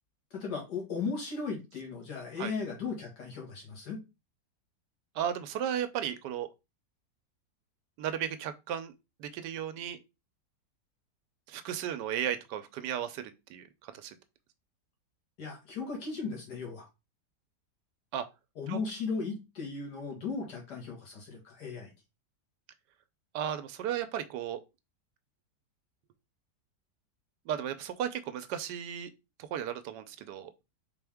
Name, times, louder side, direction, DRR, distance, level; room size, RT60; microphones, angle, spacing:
voice 1, 0.3-4.0 15.4-16.9 18.6-21.9, left 4 dB, 75° left, 2.2 m, -36 dB
voice 2, 5.2-6.5 8.0-8.9 9.2-10.0 11.5-14.2 18.1-18.3 18.7-18.8 23.3-24.6 27.5-29.1 29.4-30.5, right 9 dB, 85° right, 1.2 m, -35 dB
4.4 x 3.4 x 3.5 m
omnidirectional pair, 1.8 m